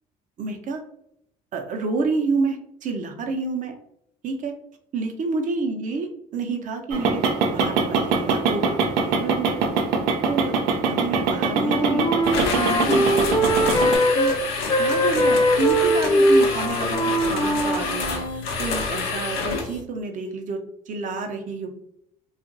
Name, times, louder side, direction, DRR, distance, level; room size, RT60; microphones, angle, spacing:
voice 1, 0.4-0.8 1.5-3.7 4.2-4.5 4.9-7.3 7.5-9.6 10.0-12.1 12.4-14.3 14.8-21.7, right 4 dB, 50° right, 4 dB, 0.7 m, -29 dB
sound 1, 6.9-14.0, right 4 dB, 90° right, 0.5 m, -23 dB
Wind instrument woodwind instrument, 11.3-14.4 14.7-18.5, equal, 25° left, 0.6 m, -21 dB
sound 2, 12.2-19.8, left 4 dB, 85° left, 0.7 m, -28 dB
2.8 x 2.4 x 2.6 m, 0.71 s
supercardioid pair, 90°, 16 cm